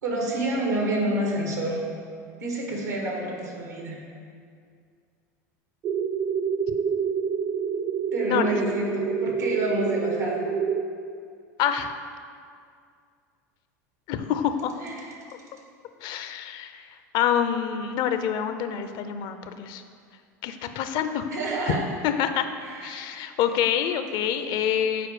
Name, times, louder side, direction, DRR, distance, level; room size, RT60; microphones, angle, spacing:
voice 1, 0.0-1.8 2.4-4.0 8.1-10.5 14.8-15.1 21.3-21.8 22.6-23.2, right 1 dB, 90° right, -1 dB, 1.5 m, -28 dB
sound 1, 5.8-10.8, right 6 dB, 45° right, 0.5 m, -27 dB
voice 2, 11.6-11.9 14.1-14.7 16.0-16.9 17.1-19.8 20.4-21.3 21.6-21.8 22.0-22.5 22.8-25.1, left 9 dB, 55° left, 9 dB, 0.5 m, -26 dB
6.8 x 4.5 x 4.8 m, 2.2 s
hypercardioid pair, 90°, 9 cm